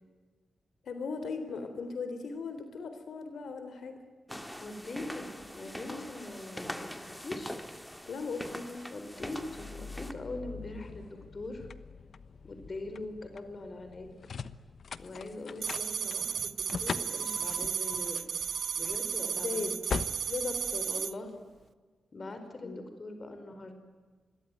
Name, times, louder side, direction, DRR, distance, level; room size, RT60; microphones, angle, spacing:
voice 1, 0.8-4.0 5.9-6.1 8.1-8.9 19.4-19.7 20.3-20.9 22.3-22.4 22.6-22.8, left 4 dB, 80° left, 8 dB, 3.7 m, -38 dB
sound 1, 4.3-10.1, equal, 5° left, 2.1 m, -43 dB
voice 2, 4.6-7.6 8.9-11.7 12.4-14.2 15.0-18.2 18.7-19.7 20.9-21.3 22.1-23.7, left 2 dB, 35° left, 7 dB, 4.8 m, -42 dB
sound 2, 9.2-21.6, left 5 dB, 55° left, 1.1 m, -42 dB
sound 3, 15.6-21.1, right 7 dB, 65° right, 0.7 m, -34 dB
27.0 x 22.5 x 9.4 m, 1.4 s
wide cardioid pair, 140°, 0 cm